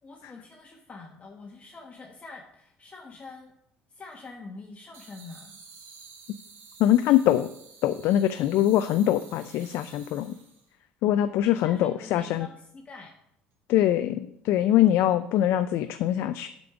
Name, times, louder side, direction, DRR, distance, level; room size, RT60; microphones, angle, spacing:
voice 1, 0.0-3.5 3.9-5.6 11.0-13.1, left 3 dB, 30° left, 1 dB, 1.3 m, -45 dB
sound 1, 4.9-10.7, right 5 dB, 65° right, 2.1 m, -51 dB
voice 2, 6.8-7.5 7.8-10.3 11.0-12.5 13.7-16.5, left 12 dB, 65° left, 10 dB, 0.4 m, -23 dB
8.3 x 5.2 x 5.9 m, 0.75 s
hypercardioid pair, 60°, 5 cm